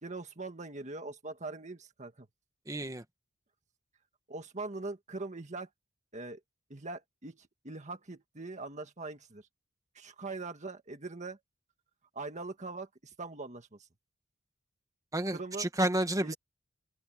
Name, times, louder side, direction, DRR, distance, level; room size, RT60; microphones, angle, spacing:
voice 1, 0.0-2.3 4.3-5.7 6.1-6.4 6.7-9.4 9.9-11.4 12.1-13.9 15.3-15.7 16.2-16.3, right 3 dB, 35° right, 1.7 m, -42 dB
voice 2, 2.7-3.0 15.1-16.3, right 1 dB, 15° right, 1.6 m, -30 dB
open air
head